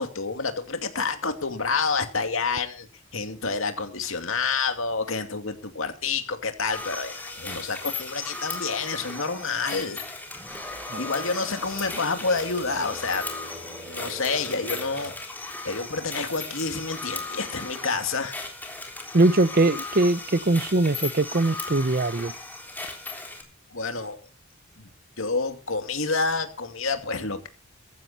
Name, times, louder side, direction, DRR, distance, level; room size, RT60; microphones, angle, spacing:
voice 1, 0.0-2.9 3.1-10.1 11.0-13.3 13.9-15.1 15.6-18.4 23.7-24.2 24.8-24.9 25.2-27.5, left 4 dB, 70° left, 2.5 m, -28 dB
sound 1, 6.7-23.4, left 3 dB, 10° left, 3.6 m, -37 dB
sound 2, 10.3-15.2, right 1 dB, 10° right, 4.2 m, -42 dB
voice 2, 19.1-22.3, right 2 dB, 45° right, 0.8 m, -21 dB
16.0 x 14.5 x 4.3 m
head